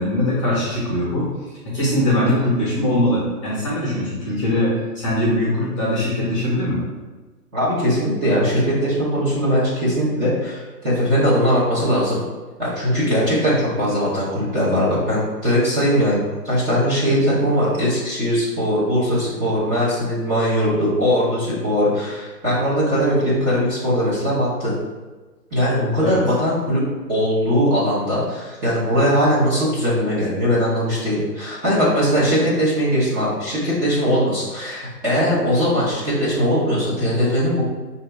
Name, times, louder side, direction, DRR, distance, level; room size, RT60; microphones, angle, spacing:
voice 1, 0.0-1.3 1.6-6.8 26.0-26.2, left 1 dB, 20° left, -6 dB, 0.8 m, -21 dB
voice 2, 7.5-12.2 12.6-24.7 25.5-37.6, equal, 15° right, -10 dB, 0.7 m, -20 dB
5.6 x 2.8 x 3.3 m, 1.3 s
hypercardioid pair, 145°, 49 cm